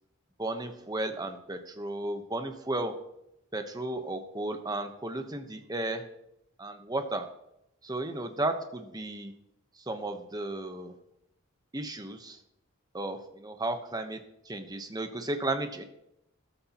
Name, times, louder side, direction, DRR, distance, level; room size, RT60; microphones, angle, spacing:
voice 1, 0.4-2.9 3.5-6.0 6.6-7.2 7.8-9.3 9.9-10.9 11.7-12.4 12.9-14.2 14.5-15.8, right 2 dB, 20° right, 7 dB, 1.1 m, -34 dB
14.0 x 12.5 x 3.0 m, 0.81 s
head